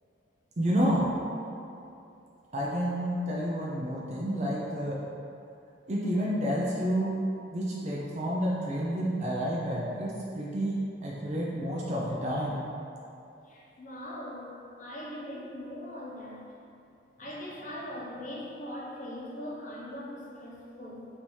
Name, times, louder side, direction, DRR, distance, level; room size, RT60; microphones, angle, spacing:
voice 1, 0.6-1.0 2.5-5.0 5.9-7.2 7.5-12.6, equal, 35° right, -5 dB, 0.5 m, -30 dB
voice 2, 13.4-16.6 17.2-21.1, left 1 dB, 40° left, -5 dB, 0.8 m, -41 dB
5.2 x 2.7 x 3.0 m, 2.7 s
head